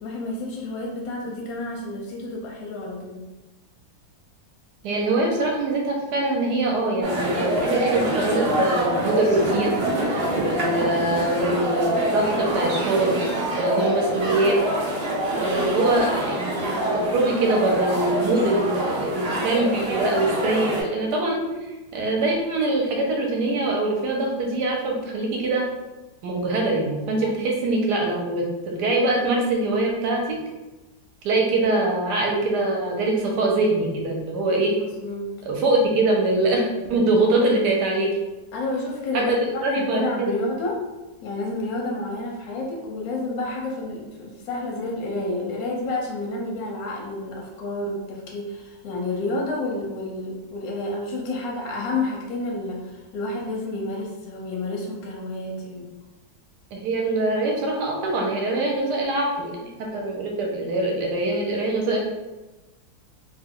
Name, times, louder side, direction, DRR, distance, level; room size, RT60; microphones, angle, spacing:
voice 1, 0.0-3.2 10.5-10.9 15.2-15.6 34.8-35.3 38.5-40.8 41.2-55.9 60.8-60.9, left 2 dB, 70° left, -1 dB, 0.9 m, -30 dB
voice 2, 4.8-9.9 10.4-13.2 13.6-14.6 15.4-21.5 21.9-25.6 26.2-30.4 31.2-34.7 35.5-36.6 36.9-38.1 39.1-40.4 56.7-62.0, right 2 dB, 70° right, 0 dB, 1.1 m, -23 dB
sound 1, 7.0-20.8, right 1 dB, 85° right, 0.5 m, -25 dB
3.0 x 2.2 x 3.6 m, 1.1 s
omnidirectional pair, 2.0 m